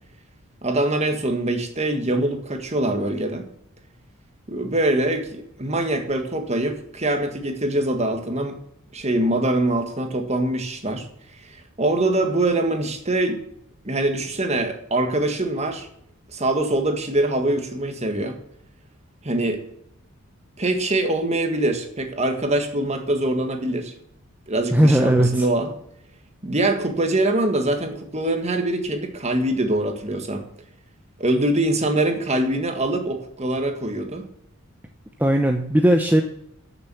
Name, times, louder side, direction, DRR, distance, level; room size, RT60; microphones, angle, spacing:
voice 1, 0.6-3.4 4.5-8.6 8.9-11.1 11.8-13.4 13.8-15.9 16.3-18.4 19.2-19.6 20.6-23.9 24.5-25.7 26.4-30.4 31.2-34.2, right 1 dB, 30° right, 6 dB, 1.6 m, -23 dB
voice 2, 24.7-25.5 35.2-36.2, right 1 dB, 10° right, 4 dB, 0.7 m, -17 dB
12.0 x 6.9 x 7.0 m, 0.74 s
head